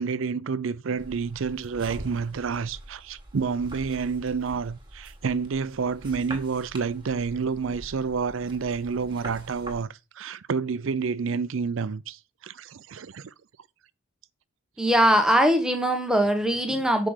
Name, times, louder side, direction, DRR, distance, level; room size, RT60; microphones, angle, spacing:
voice 1, 0.0-9.9 10.2-13.3, right 5 dB, 65° right, 0.5 m, -29 dB
sound 1, 1.0-9.8, right 1 dB, 20° right, 1.7 m, -44 dB
voice 2, 14.8-17.1, equal, 5° right, 1.0 m, -21 dB
5.9 x 4.8 x 6.4 m
head